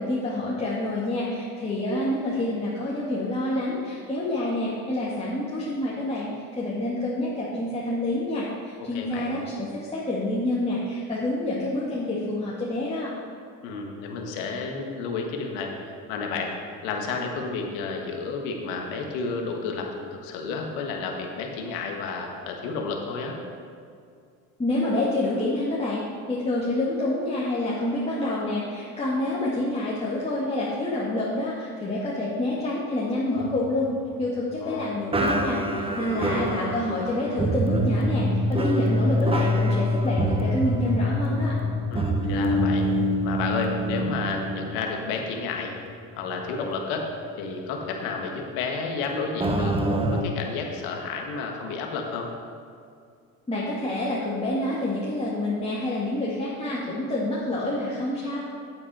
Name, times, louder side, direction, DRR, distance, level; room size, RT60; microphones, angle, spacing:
voice 1, 0.0-13.1 24.6-26.0 26.3-33.9 34.2-41.5 53.5-58.4, left 1 dB, 15° left, -8 dB, 2.0 m, -27 dB
voice 2, 8.9-9.4 13.6-16.5 16.8-23.4 34.6-34.9 36.1-36.5 41.9-42.9 43.2-45.8 46.2-47.1 47.4-49.7 50.1-52.3, left 4 dB, 85° left, 1 dB, 1.6 m, -31 dB
sound 1, 33.4-34.7 35.1-45.5 45.8-46.0 46.6-46.7 49.4-50.2, equal, 15° right, 1.0 m, -25 dB
9.4 x 8.5 x 4.3 m, 2.3 s
supercardioid pair, 85°, 38 cm